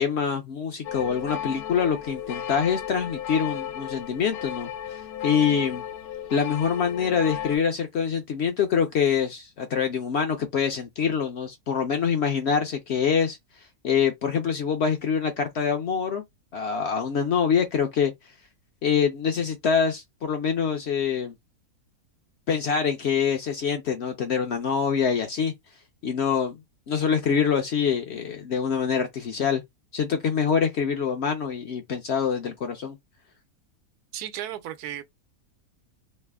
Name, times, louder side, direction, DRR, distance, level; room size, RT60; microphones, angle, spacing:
voice 1, 0.0-4.7 5.2-5.8 6.3-13.4 13.8-16.2 16.5-18.1 18.8-21.3 22.5-25.5 26.0-26.6 26.9-29.6 29.9-33.0, left 7 dB, 60° left, 0.7 m, -25 dB
sound 1, 0.8-7.6, left 10 dB, 85° left, 1.1 m, -34 dB
voice 2, 34.1-35.0, right 11 dB, 90° right, 1.1 m, -34 dB
3.2 x 2.1 x 3.4 m
omnidirectional pair, 1.6 m